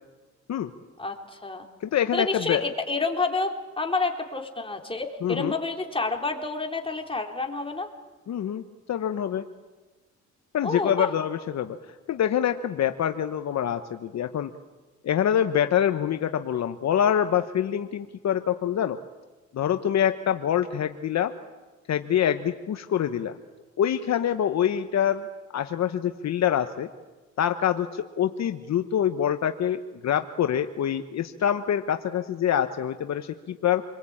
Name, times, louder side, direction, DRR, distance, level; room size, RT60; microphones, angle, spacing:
voice 1, 1.0-1.7 2.1-7.9 10.6-11.1, left 3 dB, 20° left, 3 dB, 3.7 m, -29 dB
voice 2, 1.8-2.7 5.2-5.5 8.3-8.6 8.9-9.5 10.5-11.8 12.1-14.5 15.0-19.0 19.5-21.3 21.9-23.3 23.8-25.3 25.5-26.9 27.4-33.8, left 9 dB, 60° left, 8 dB, 1.2 m, -25 dB
28.0 x 22.5 x 8.8 m, 1.2 s
cardioid pair, 90°, 30 cm